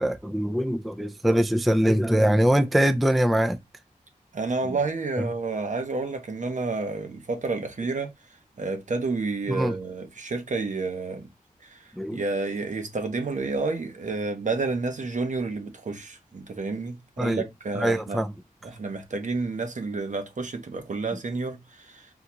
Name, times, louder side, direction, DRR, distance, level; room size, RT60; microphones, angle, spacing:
voice 1, 0.0-3.6 9.5-9.7 12.0-12.2 17.2-17.4 17.8-18.3, equal, ahead, 0.3 m, -22 dB
voice 2, 4.3-8.1 8.6-11.3 11.6-11.8 12.1-18.2 18.6-22.1, right 3 dB, 55° right, 0.8 m, -30 dB
3.7 x 2.3 x 2.8 m
wide cardioid pair, 60°, 15 cm